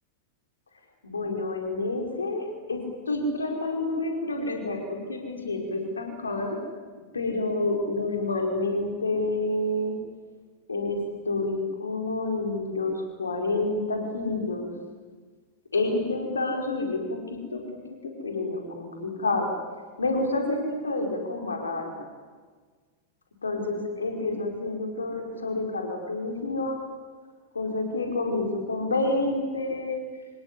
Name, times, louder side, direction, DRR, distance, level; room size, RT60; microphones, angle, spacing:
voice 1, 1.0-6.6 7.1-10.0 10.7-14.7 15.7-17.6 18.0-19.5 20.0-21.9 23.4-26.8 27.5-30.0, left 2 dB, 75° left, 2 dB, 5.0 m, -29 dB
26.0 x 21.0 x 9.8 m, 1.5 s
figure-of-eight pair, 90°, 0 cm